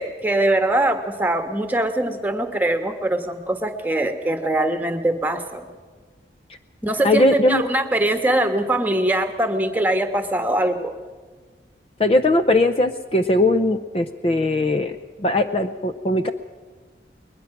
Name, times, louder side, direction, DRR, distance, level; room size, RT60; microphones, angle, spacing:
voice 1, 0.0-5.6 6.8-10.9, right 1 dB, 10° right, 7 dB, 1.4 m, -22 dB
voice 2, 7.0-7.6 12.0-16.3, left 2 dB, 30° left, 9 dB, 0.6 m, -19 dB
21.0 x 21.0 x 6.0 m, 1.4 s
head